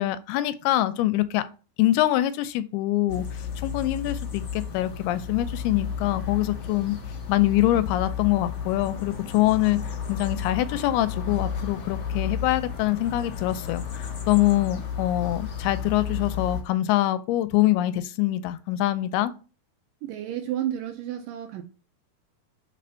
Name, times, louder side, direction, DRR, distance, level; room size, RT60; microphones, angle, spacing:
voice 1, 0.0-1.4 1.8-7.0 7.3-19.3, left 15 dB, 90° left, 2.6 m, -24 dB
sound 1, 3.1-16.6, left 7 dB, 65° left, 1.3 m, -33 dB
voice 2, 20.0-21.6, right 11 dB, 80° right, 2.0 m, -31 dB
5.5 x 4.2 x 5.6 m
omnidirectional pair, 4.5 m